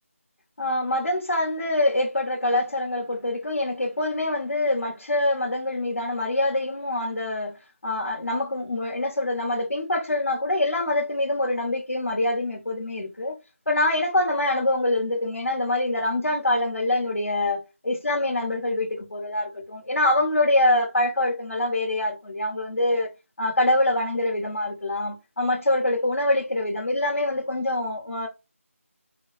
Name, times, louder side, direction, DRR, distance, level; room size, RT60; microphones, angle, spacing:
voice 1, 0.6-7.6 7.8-13.4 13.7-23.1 23.4-28.3, left 1 dB, 65° left, 1.3 m, -25 dB
3.9 x 2.2 x 4.0 m
figure-of-eight pair, 175°, 8 cm